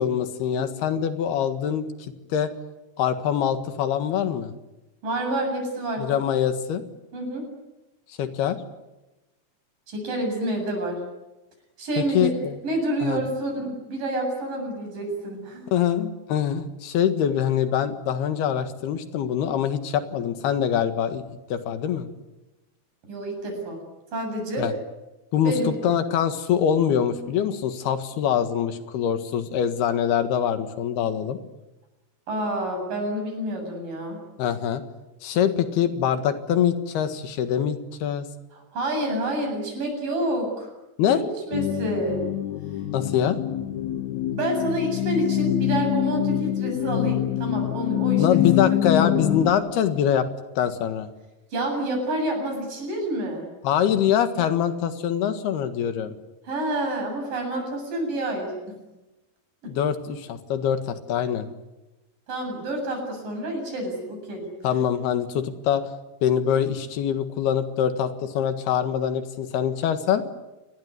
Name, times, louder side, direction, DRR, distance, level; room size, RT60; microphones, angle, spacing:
voice 1, 0.0-1.9 2.3-2.5 3.0-4.5 6.0-6.8 8.1-8.6 12.0-12.6 13.0-13.2 15.7-21.2 21.5-22.1 24.6-24.7 25.3-31.4 34.4-34.8 35.2-38.3 41.0-41.2 42.9-43.4 48.2-50.3 50.6-51.1 53.6-56.2 59.7-61.5 64.6-65.8 66.2-70.2, left 9 dB, 90° left, 9 dB, 3.7 m, -24 dB
voice 2, 5.0-6.1 7.1-7.4 9.9-11.0 11.8-12.3 12.6-15.7 23.1-23.8 24.1-24.7 25.4-25.7 32.3-34.2 38.7-40.7 41.1-42.2 44.4-49.1 51.5-53.5 56.4-58.8 59.6-59.7 62.3-64.4, right 1 dB, 60° right, 3 dB, 9.5 m, -28 dB
sound 1, 41.5-49.5, left 12 dB, 65° left, 2.0 m, -25 dB
28.5 x 21.0 x 9.8 m, 1.0 s
omnidirectional pair, 4.4 m